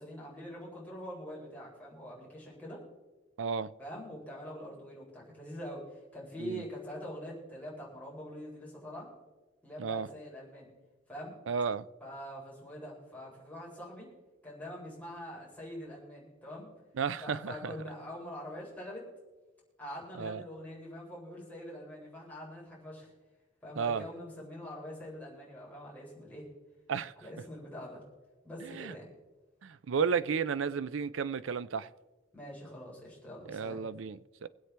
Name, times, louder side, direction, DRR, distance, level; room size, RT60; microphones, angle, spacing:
voice 1, 0.0-2.8 3.8-9.1 9.6-10.7 11.1-11.4 12.0-14.1 14.4-16.7 17.2-19.1 19.8-23.1 23.6-26.5 27.2-28.0 28.4-29.1 32.3-33.8, equal, 10° left, 4.0 m, -44 dB
voice 2, 3.4-3.7 6.4-6.6 9.8-10.1 11.5-11.8 17.0-17.7 20.2-20.4 23.8-24.0 26.9-27.1 28.6-28.9 29.6-31.9 33.5-34.5, right 6 dB, 70° right, 0.5 m, -33 dB
24.0 x 8.0 x 3.4 m
head